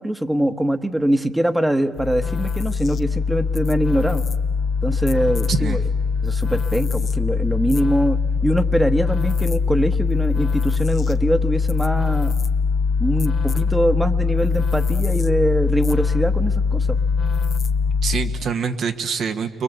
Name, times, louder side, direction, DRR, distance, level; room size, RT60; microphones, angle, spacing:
voice 1, 0.0-4.2 4.8-5.8 6.2-12.4 13.0-17.0, right 1 dB, 5° right, 8 dB, 1.2 m, -22 dB
sound 1, 2.0-18.5, left 5 dB, 50° left, 0.9 m, -22 dB
voice 2, 5.5-5.9 18.0-19.6, right 6 dB, 65° right, 6 dB, 1.7 m, -25 dB
29.5 x 23.0 x 8.3 m, 1.4 s
cardioid pair, 90°, 0 cm